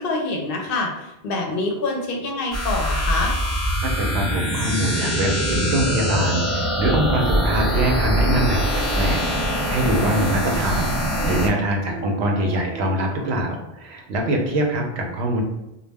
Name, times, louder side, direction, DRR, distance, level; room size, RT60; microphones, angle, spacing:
voice 1, 0.0-3.4, left 2 dB, 65° left, 0 dB, 0.8 m, -26 dB
sound 1, 2.5-11.5, equal, 30° left, 0.6 m, -23 dB
voice 2, 3.8-8.6 8.9-10.9 11.2-15.4, right 1 dB, 85° right, 2 dB, 0.9 m, -23 dB
sound 2, 7.1-13.4, equal, 55° right, 0.8 m, -40 dB
2.2 x 2.0 x 3.3 m, 0.92 s
omnidirectional pair, 1.1 m